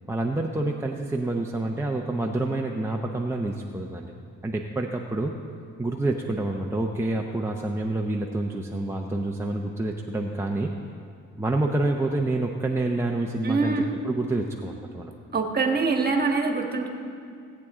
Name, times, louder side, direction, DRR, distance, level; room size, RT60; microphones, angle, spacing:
voice 1, 0.1-4.1 4.4-5.3 5.8-10.7 11.4-13.8 14.0-15.1, right 2 dB, 10° right, 0 dB, 0.7 m, -27 dB
voice 2, 13.4-13.9 15.3-16.9, right 4 dB, 30° right, 3 dB, 1.6 m, -24 dB
18.0 x 8.7 x 3.7 m, 2.4 s
cardioid pair, 90°, 30 cm